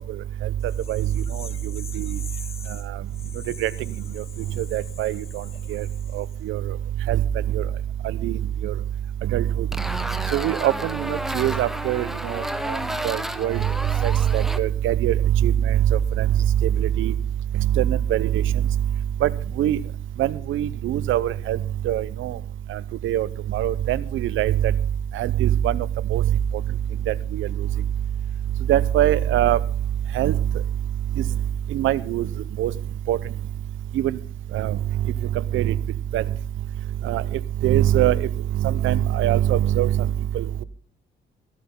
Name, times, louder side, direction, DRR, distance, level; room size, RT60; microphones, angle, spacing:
sound 1, 0.6-6.4, left 5 dB, 30° left, 0.7 m, -44 dB
voice 1, 1.7-2.2 3.6-3.7 4.2-4.3 4.6-5.4 5.7-5.8 6.1-6.7 7.1-7.2 7.5-7.6 8.0-8.7 9.2-9.7 10.3-12.8 13.0-13.6 14.0-16.3 16.6-17.1 17.6-18.4 19.2-19.3 19.6-19.8 20.2-21.6 21.8-22.4 22.7-24.7 25.1-25.9 26.1-26.2 27.1-27.7 28.7-29.6 30.1-30.3 31.2-31.3 31.7-32.3 32.6-32.7 33.1-33.2 33.9-34.2 34.5-34.8 35.5-35.8 36.1-36.2 37.0-37.2 37.6-38.3 38.5-40.1 40.3-40.6, right 12 dB, 80° right, 19 dB, 0.7 m, -22 dB
sound 2, 9.7-14.6, equal, ahead, 1.0 m, -31 dB
17.0 x 12.5 x 3.8 m, 0.40 s
cardioid pair, 90°, 20 cm